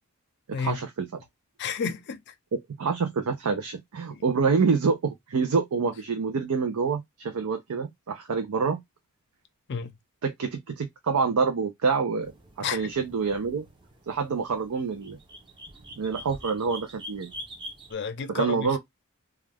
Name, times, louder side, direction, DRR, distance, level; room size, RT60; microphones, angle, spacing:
voice 1, 0.5-1.1 2.5-8.8 10.2-12.3 12.6-13.7 14.1-15.2 16.0-17.3 18.3-18.8, right 5 dB, 80° right, 0.5 m, -27 dB
voice 2, 1.6-2.3 4.1-4.2 9.7-9.9 12.6-12.9 17.9-18.8, left 6 dB, 50° left, 0.4 m, -31 dB
sound 1, 12.2-17.9, equal, 20° right, 0.5 m, -45 dB
2.4 x 2.2 x 3.2 m
head